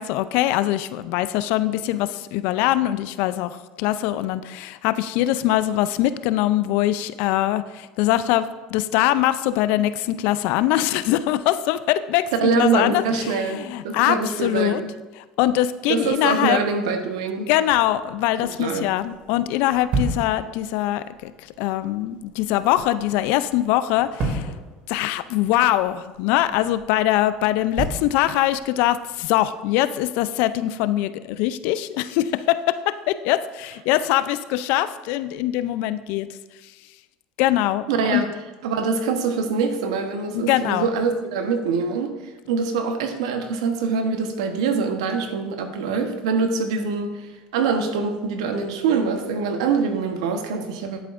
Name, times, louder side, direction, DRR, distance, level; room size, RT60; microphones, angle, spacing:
voice 1, 0.0-14.8 15.4-16.6 17.4-24.5 24.9-36.3 37.4-38.2 40.3-40.9, left 14 dB, 70° left, 13 dB, 0.4 m, -22 dB
voice 2, 12.4-13.6 13.8-14.9 15.9-17.5 18.4-18.9 37.9-38.3 38.6-51.0, right 5 dB, 80° right, 6 dB, 1.1 m, -24 dB
sound 1, 17.6-29.4, right 3 dB, 55° right, 2.4 m, -35 dB
10.5 x 8.3 x 2.5 m, 1.2 s
hypercardioid pair, 90°, 3 cm